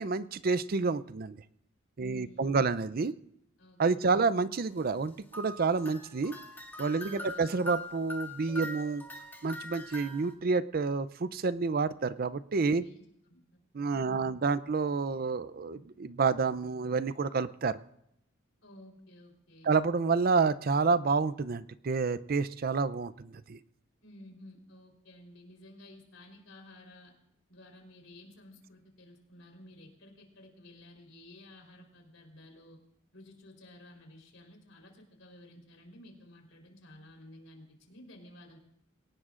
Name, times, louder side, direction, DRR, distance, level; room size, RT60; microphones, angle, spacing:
voice 1, 0.0-1.4 2.0-3.1 3.8-6.3 6.8-9.0 9.4-12.8 13.7-17.8 19.6-23.6, right 4 dB, 50° right, 16 dB, 0.5 m, -29 dB
voice 2, 2.0-2.7 3.6-4.2 7.0-7.5 12.8-13.4 14.0-14.4 18.6-19.7 24.0-27.1 27.5-32.8 33.1-38.6, left 1 dB, 85° left, 2 dB, 3.8 m, -53 dB
sound 1, 5.3-10.3, equal, 10° left, 1.7 m, -42 dB
22.0 x 18.5 x 2.5 m, 0.78 s
head